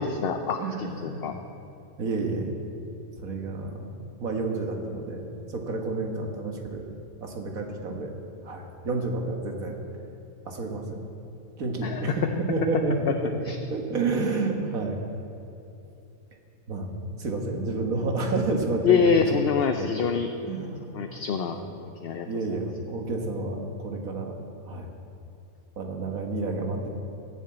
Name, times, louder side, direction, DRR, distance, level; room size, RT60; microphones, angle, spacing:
voice 1, 0.0-1.3 11.8-12.1 13.1-13.2 13.5-13.6 18.8-20.3 20.9-22.3, left 6 dB, 55° left, 6 dB, 0.7 m, -25 dB
voice 2, 0.6-1.4 2.0-2.6 3.2-3.9 4.2-6.9 7.2-8.1 8.4-9.8 10.4-11.0 11.6-13.4 13.7-15.0 16.7-19.9 20.4-21.2 21.5-21.7 22.3-24.3 24.6-24.9 25.8-26.9, right 3 dB, 80° right, 2 dB, 1.9 m, -30 dB
13.5 x 7.3 x 8.6 m, 2.8 s
omnidirectional pair, 1.5 m